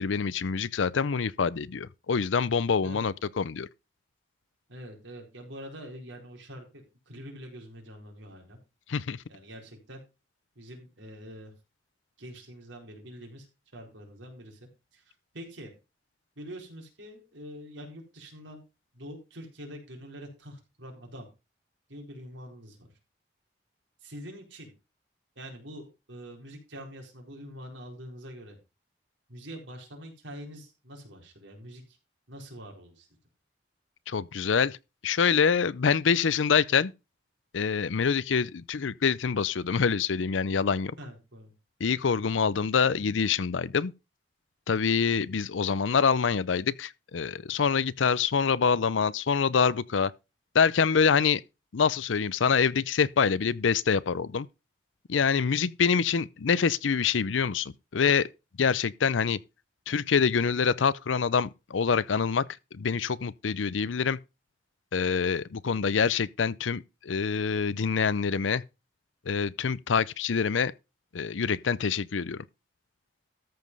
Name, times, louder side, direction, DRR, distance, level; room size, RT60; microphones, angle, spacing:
voice 1, 0.0-3.7 8.9-9.2 34.1-34.8 35.0-36.9 37.5-40.9 41.8-43.9 44.7-50.1 50.5-51.4 51.7-54.5 55.1-58.3 58.6-59.4 59.9-62.4 62.7-64.2 64.9-68.6 69.3-70.7 71.1-72.4, left 6 dB, 90° left, 0.5 m, -25 dB
voice 2, 4.7-8.6 9.3-10.0 10.6-11.5 12.2-13.5 13.7-15.7 16.4-18.6 18.9-21.3 21.9-22.9 24.0-24.7 25.4-28.6 29.3-32.0 32.3-33.1 41.0-41.5 42.3-42.5, equal, 85° right, 4.3 m, -45 dB
13.5 x 5.2 x 5.4 m
head